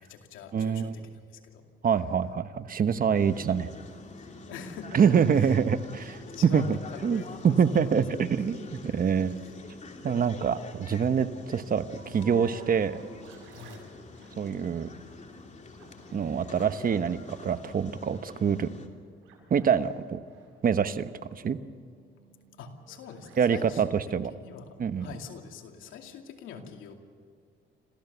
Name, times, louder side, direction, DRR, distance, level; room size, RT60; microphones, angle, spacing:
voice 1, 0.0-1.6 2.9-3.3 4.2-5.6 6.3-7.6 8.9-9.0 9.3-9.5 13.6-14.0 22.5-26.9, left 6 dB, 90° left, 3 dB, 2.5 m, -45 dB
voice 2, 0.5-0.9 1.8-3.7 4.9-6.6 7.0-9.4 10.0-13.0 14.4-14.9 16.1-18.7 19.5-20.2 20.6-21.0 21.3-21.6 23.4-24.3 24.8-25.1, right 7 dB, 45° right, 11 dB, 1.1 m, -25 dB
sound 1, 3.1-18.9, left 3 dB, 35° left, 2.8 m, -46 dB
sound 2, 11.9-25.0, right 2 dB, 90° right, 7.4 m, -54 dB
26.5 x 16.0 x 6.9 m, 2.2 s
cardioid pair, 90°, 20 cm